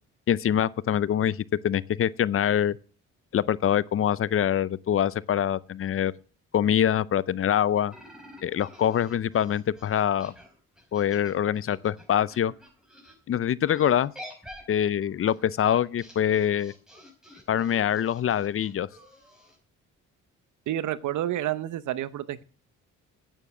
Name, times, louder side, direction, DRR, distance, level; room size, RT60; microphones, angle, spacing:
voice 1, 0.3-1.4 1.6-2.8 3.3-6.1 6.5-7.9 8.4-10.3 10.9-12.5 13.3-14.1 14.7-16.7 17.5-18.9, left 10 dB, 45° left, 0.6 m, -24 dB
sound 1, 7.9-13.1 13.7-19.6, equal, ahead, 5.4 m, -49 dB
voice 2, 20.7-22.4, right 12 dB, 75° right, 0.9 m, -29 dB
9.1 x 9.1 x 7.3 m
cardioid pair, 90°, 30 cm